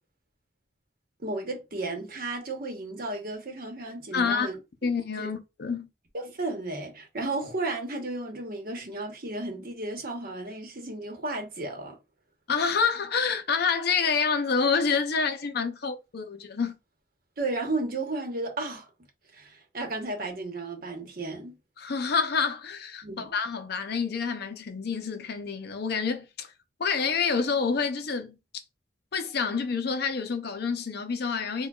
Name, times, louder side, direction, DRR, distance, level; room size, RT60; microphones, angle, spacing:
voice 1, 1.2-4.6 5.2-5.3 6.1-12.0 17.4-18.9 19.3-21.6 23.0-23.3, right 2 dB, 50° right, 1.0 m, -33 dB
voice 2, 4.1-4.5 4.8-5.9 12.5-16.8 21.8-26.5 26.8-28.4 29.1-31.7, left 5 dB, 55° left, 0.6 m, -28 dB
4.6 x 2.3 x 2.3 m
head